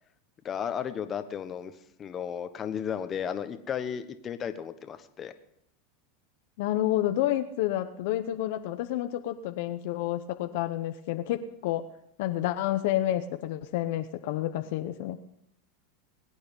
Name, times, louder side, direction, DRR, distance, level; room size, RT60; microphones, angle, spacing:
voice 1, 0.4-1.7 2.0-5.3, left 8 dB, 30° left, 9 dB, 1.2 m, -34 dB
voice 2, 6.6-11.8 12.2-15.2, left 13 dB, 65° left, 8 dB, 0.8 m, -29 dB
21.0 x 8.7 x 5.4 m, 0.77 s
hypercardioid pair, 110°, 0 cm